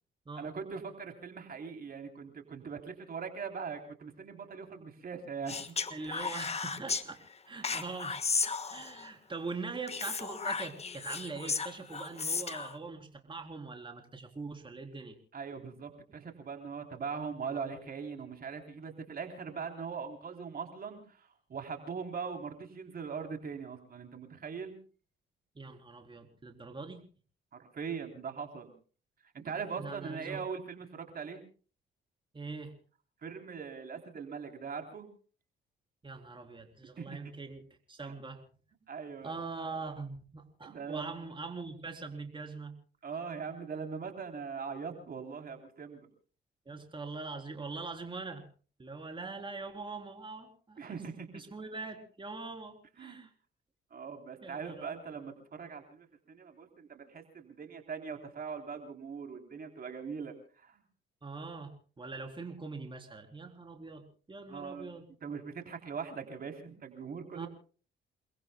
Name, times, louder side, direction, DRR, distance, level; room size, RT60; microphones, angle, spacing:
voice 1, 0.4-6.1 7.5-7.8 15.3-24.7 27.7-28.7 29.3-31.4 33.2-35.1 37.0-37.2 38.0-38.1 38.9-39.3 40.6-41.1 43.0-46.1 50.8-51.3 53.0-53.2 53.9-60.8 64.5-64.9 65.2-67.5, right 6 dB, 50° right, 4 dB, 3.5 m, -41 dB
Speech, 5.5-7.0 7.6-9.1 9.9-12.7, left 5 dB, 30° left, 1.5 m, -34 dB
voice 2, 5.9-7.2 7.5-8.2 8.7-15.2 25.6-27.0 29.8-30.4 32.3-32.7 36.0-37.6 37.9-38.4 39.2-42.7 46.7-48.4 48.8-51.0 51.3-53.3 54.4-55.0 61.2-65.0 67.3-67.5, right 3 dB, 25° right, 3 dB, 3.7 m, -42 dB
29.5 x 21.0 x 2.3 m, 0.40 s
cardioid pair, 90°, 20 cm